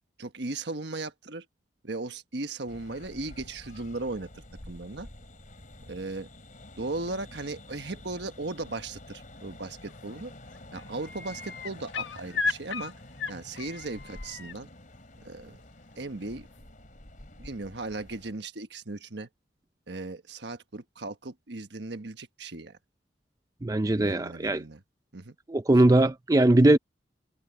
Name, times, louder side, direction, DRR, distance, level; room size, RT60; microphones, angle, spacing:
voice 1, 0.2-1.4 1.8-5.1 5.9-6.3 6.8-10.3 10.7-12.9 13.3-14.7 15.2-15.6 16.0-16.5 17.4-19.3 19.9-22.8 24.0-24.8 25.1-25.3, right 2 dB, 70° right, 1.4 m, -37 dB
sound 1, 2.7-18.3, left 1 dB, 45° left, 3.6 m, -49 dB
sound 2, 9.9-10.2 10.5-14.6 16.2-16.3, left 4 dB, 85° left, 1.4 m, -35 dB
voice 2, 23.6-24.6 25.5-26.8, right 1 dB, 20° right, 0.5 m, -20 dB
head